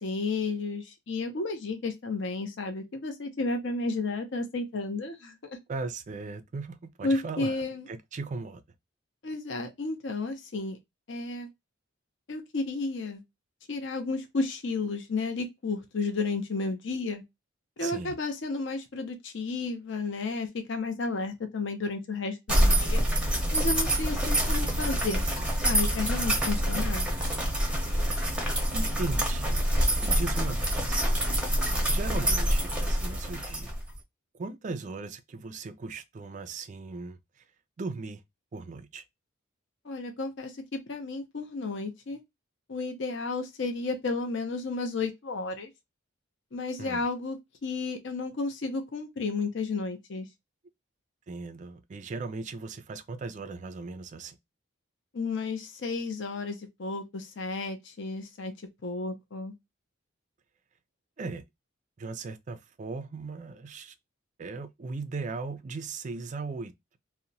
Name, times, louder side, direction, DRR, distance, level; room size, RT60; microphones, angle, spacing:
voice 1, 0.0-5.6 7.0-7.9 9.2-10.8 11.1-11.5 12.3-13.2 13.7-17.2 17.8-23.0 23.5-25.2 25.6-27.1 39.8-42.2 42.7-45.7 46.5-50.3 55.1-58.5 58.8-59.5, left 3 dB, 55° left, 0.6 m, -32 dB
voice 2, 5.7-7.6 7.9-8.6 17.8-18.1 28.7-29.6 30.0-31.0 31.9-33.7 34.3-37.2 37.8-38.2 38.5-39.0 46.8-47.0 51.3-54.4 61.2-61.4 62.0-63.9 64.4-67.0, right 3 dB, 35° right, 0.3 m, -37 dB
sound 1, 22.5-34.0, equal, 5° right, 0.7 m, -26 dB
2.8 x 2.1 x 2.6 m
head